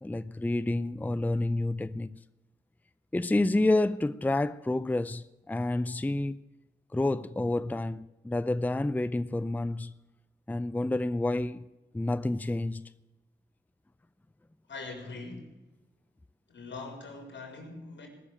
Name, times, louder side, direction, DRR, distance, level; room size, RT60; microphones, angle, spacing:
voice 1, 0.0-2.1 3.1-6.4 6.9-9.9 10.5-11.7 11.9-12.9, left 2 dB, 10° left, 0.5 m, -29 dB
voice 2, 14.7-15.5 16.5-18.1, left 3 dB, 85° left, 4.4 m, -42 dB
19.0 x 7.0 x 8.8 m
cardioid pair, 70°, 18 cm